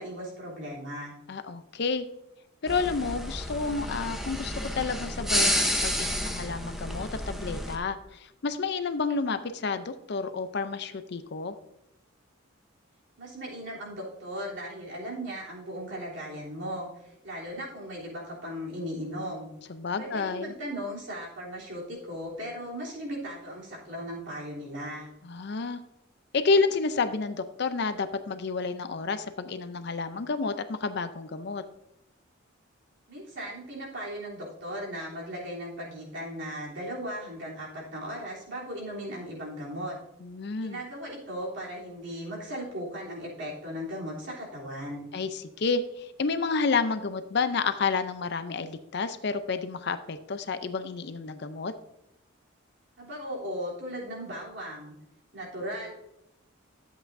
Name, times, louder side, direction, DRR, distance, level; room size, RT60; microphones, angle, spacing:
voice 1, 0.0-1.1 13.2-16.9 17.2-19.5 20.0-25.1 33.1-40.0 40.6-45.1 53.0-54.9 55.3-56.0, equal, 60° right, -4 dB, 3.3 m, -37 dB
voice 2, 1.3-2.0 2.6-11.6 19.7-20.5 25.2-25.8 26.3-31.6 40.2-40.8 45.1-51.7, left 4 dB, 55° left, 10 dB, 0.6 m, -30 dB
sound 1, 2.7-7.8, equal, ahead, 0.8 m, -30 dB
12.5 x 8.0 x 2.6 m, 0.87 s
head